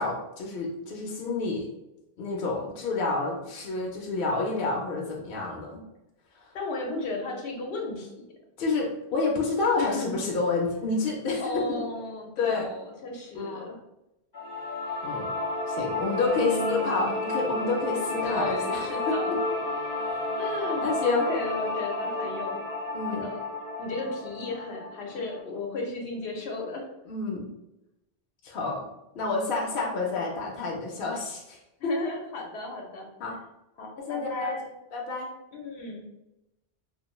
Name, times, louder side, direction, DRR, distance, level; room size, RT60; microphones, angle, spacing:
voice 1, 0.0-1.7 2.2-5.8 6.3-6.6 8.6-11.8 12.4-12.7 13.3-13.7 15.0-15.4 15.7-19.1 20.0-20.3 20.8-21.3 22.9-23.3 27.1-27.5 28.4-28.9 29.1-31.9 33.2-33.4 34.0-34.5 34.9-35.3, left 3 dB, 65° left, -1 dB, 0.7 m, -29 dB
voice 2, 6.5-8.1 9.8-10.2 11.4-13.8 16.3-17.1 18.0-19.4 20.4-22.6 23.1-23.4 23.8-26.9 31.8-33.1 33.8-34.7 35.5-36.1, left 2 dB, 90° left, 0 dB, 0.9 m, -34 dB
sound 1, 14.3-25.4, left 2 dB, 25° left, 0.5 m, -31 dB
2.5 x 2.2 x 2.9 m, 0.92 s
omnidirectional pair, 1.1 m